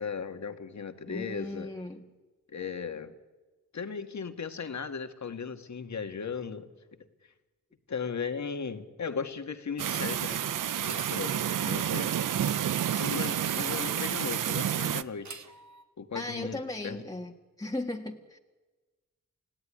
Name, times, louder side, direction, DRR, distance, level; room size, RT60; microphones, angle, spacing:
voice 1, 0.0-1.7 2.5-3.1 3.7-6.7 7.9-10.4 10.8-12.1 13.0-15.4 16.0-17.0, left 6 dB, 60° left, 8 dB, 1.9 m, -37 dB
voice 2, 1.1-2.1 16.1-17.3 17.6-18.4, left 1 dB, 10° left, 1 dB, 1.7 m, -37 dB
sound 1, 9.8-15.0, right 9 dB, 80° right, 0.8 m, -29 dB
sound 2, 10.2-11.2 11.5-14.8 15.2-15.8, right 5 dB, 65° right, 1.9 m, -47 dB
29.0 x 16.5 x 9.9 m, 1.3 s
cardioid pair, 65°, 31 cm